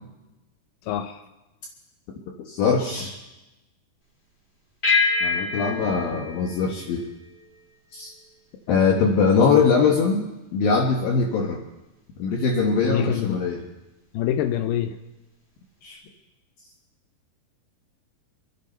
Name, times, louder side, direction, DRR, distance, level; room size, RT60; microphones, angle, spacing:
voice 1, 0.9-1.2 9.4-9.6 12.8-13.4 14.1-15.0, left 10 dB, 85° left, 9 dB, 1.9 m, -25 dB
voice 2, 2.4-3.2 5.2-7.1 7.9-8.1 8.7-10.3 10.5-11.6 12.2-13.6 15.8-16.0, left 5 dB, 70° left, 1 dB, 2.7 m, -22 dB
sound 1, 4.8-7.6, left 4 dB, 30° left, 1.2 m, -26 dB
26.5 x 10.5 x 4.4 m, 1.0 s
omnidirectional pair, 4.6 m